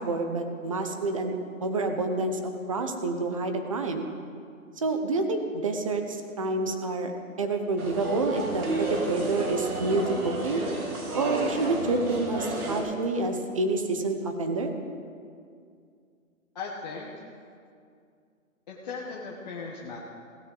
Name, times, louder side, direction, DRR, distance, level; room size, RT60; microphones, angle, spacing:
voice 1, 0.0-1.3 1.6-4.1 4.8-7.1 7.4-10.0 10.4-10.6 11.1-14.7, right 3 dB, 25° right, 5 dB, 0.7 m, -28 dB
sound 1, 7.8-12.8, right 2 dB, 90° right, 3.0 m, -32 dB
voice 2, 16.5-17.1 18.7-20.0, left 4 dB, 30° left, -3 dB, 1.2 m, -37 dB
16.0 x 13.5 x 3.9 m, 2.3 s
hypercardioid pair, 165°, 42 cm